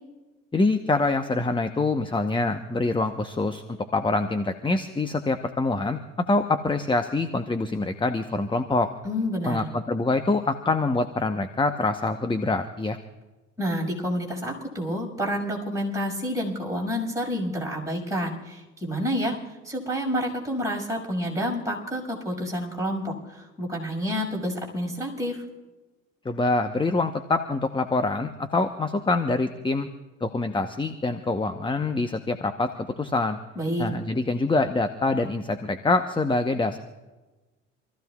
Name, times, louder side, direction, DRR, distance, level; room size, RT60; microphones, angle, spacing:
voice 1, 0.5-3.6 3.9-6.0 6.3-8.9 9.5-13.0 26.2-29.9 30.2-33.4 33.8-36.8, left 3 dB, 15° left, 8 dB, 1.0 m, -25 dB
voice 2, 9.0-9.7 13.6-19.3 19.6-25.4 33.5-33.9, equal, 10° right, -2 dB, 6.0 m, -29 dB
28.0 x 15.0 x 2.4 m, 1.2 s
hypercardioid pair, 65°, 37 cm